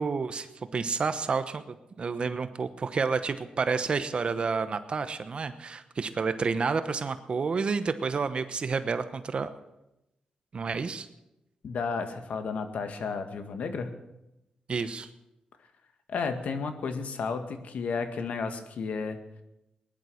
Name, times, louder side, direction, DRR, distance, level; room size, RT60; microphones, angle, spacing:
voice 1, 0.0-9.5 10.5-11.1 14.7-15.1, right 5 dB, 45° right, 11 dB, 0.9 m, -30 dB
voice 2, 11.6-13.9 16.1-19.2, left 5 dB, 75° left, 7 dB, 1.9 m, -32 dB
19.5 x 11.0 x 6.4 m, 0.90 s
cardioid pair, 105°, 2 cm